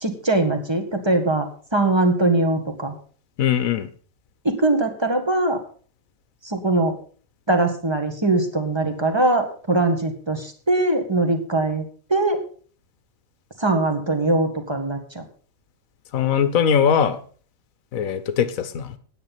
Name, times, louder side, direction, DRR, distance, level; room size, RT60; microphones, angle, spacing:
voice 1, 0.0-2.9 4.4-5.6 6.4-6.9 7.5-11.8 12.1-12.4 13.6-15.2, right 2 dB, 20° right, 5 dB, 1.8 m, -21 dB
voice 2, 3.4-3.9 16.1-17.2 17.9-18.9, left 8 dB, 75° left, 13 dB, 1.4 m, -21 dB
9.7 x 9.4 x 5.7 m, 0.42 s
omnidirectional pair, 1.4 m